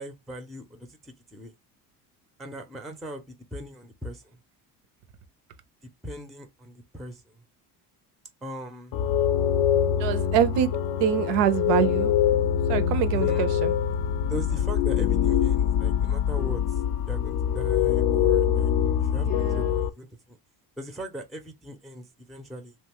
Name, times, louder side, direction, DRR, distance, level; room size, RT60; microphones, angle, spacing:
voice 1, 0.0-1.5 2.4-4.4 6.0-7.2 8.4-9.0 13.1-13.5 14.3-18.7 19.0-20.4 20.8-22.7, equal, ahead, 0.5 m, -39 dB
sound 1, 8.9-19.9, left 9 dB, 50° left, 0.5 m, -24 dB
voice 2, 10.0-10.7 11.0-12.1 12.7-13.7 19.2-19.7, right 10 dB, 65° right, 0.7 m, -25 dB
2.8 x 2.3 x 2.9 m
hypercardioid pair, 65°, 47 cm